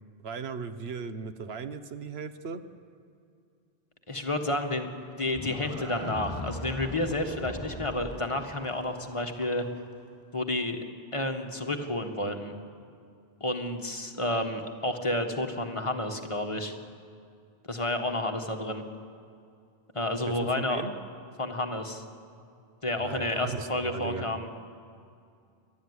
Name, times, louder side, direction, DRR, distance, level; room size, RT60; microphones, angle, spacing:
voice 1, 0.2-2.6 20.3-21.0 23.0-24.2, right 5 dB, 80° right, 11 dB, 1.2 m, -37 dB
voice 2, 4.1-4.9 5.2-9.6 10.3-10.8 11.1-12.5 13.4-16.7 17.7-18.8 19.9-20.8 21.4-22.0 22.8-24.6, left 1 dB, 30° left, 4 dB, 1.7 m, -30 dB
Livestock farm animals working animals, 5.0-9.8, left 1 dB, 15° left, 7.8 m, -39 dB
29.0 x 12.5 x 9.7 m, 2.3 s
omnidirectional pair, 1.0 m